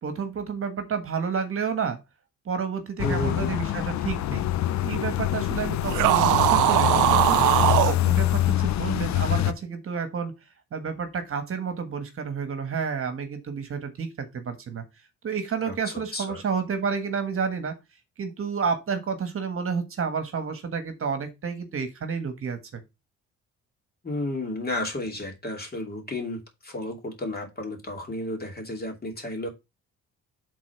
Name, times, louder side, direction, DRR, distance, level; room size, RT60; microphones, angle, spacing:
voice 1, 0.0-2.0 2.4-7.4 7.8-10.3 10.7-14.8 15.2-17.7 18.2-22.8, right 6 dB, 45° right, 1.5 m, -30 dB
sound 1, 3.0-9.5, left 13 dB, 65° left, 0.6 m, -25 dB
voice 2, 3.0-3.6 15.6-16.4 24.0-29.5, left 1 dB, 30° left, 2.6 m, -32 dB
sound 2, 5.9-8.0, right 16 dB, 85° right, 0.5 m, -20 dB
6.1 x 4.0 x 5.8 m
cardioid pair, 90°, 30 cm